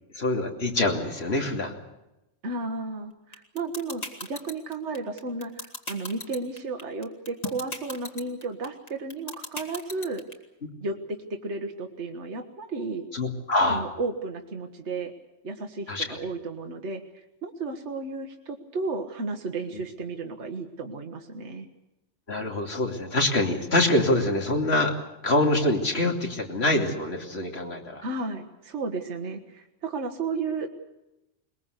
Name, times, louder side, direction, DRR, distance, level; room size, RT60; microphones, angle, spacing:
voice 1, 0.1-1.7 13.1-13.8 15.9-16.2 22.3-24.9 25.2-28.1, left 2 dB, 55° left, 3 dB, 3.1 m, -25 dB
voice 2, 2.4-10.2 10.8-13.1 13.7-15.1 15.4-21.7 28.0-30.7, right 3 dB, 65° right, 4 dB, 1.8 m, -33 dB
sound 1, 3.3-10.3, left 1 dB, 30° left, 2.5 m, -35 dB
22.0 x 21.5 x 8.2 m, 0.94 s
omnidirectional pair, 1.3 m